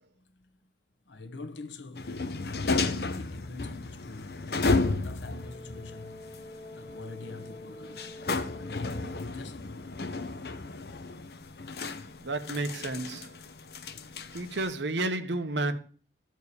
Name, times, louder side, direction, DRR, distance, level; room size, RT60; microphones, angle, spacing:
voice 1, 0.1-0.7 1.1-4.5 5.0-6.2 6.7-8.1 8.5-10.0 13.9-14.5, left 2 dB, 85° left, 1.0 m, -45 dB
sound 1, 2.0-14.7, left 3 dB, 60° left, 0.8 m, -33 dB
Brass instrument, 5.2-9.4, left 1 dB, 30° left, 1.6 m, -47 dB
voice 2, 12.2-13.4 14.3-15.8, right 2 dB, 80° right, 1.0 m, -31 dB
13.0 x 4.7 x 8.3 m
head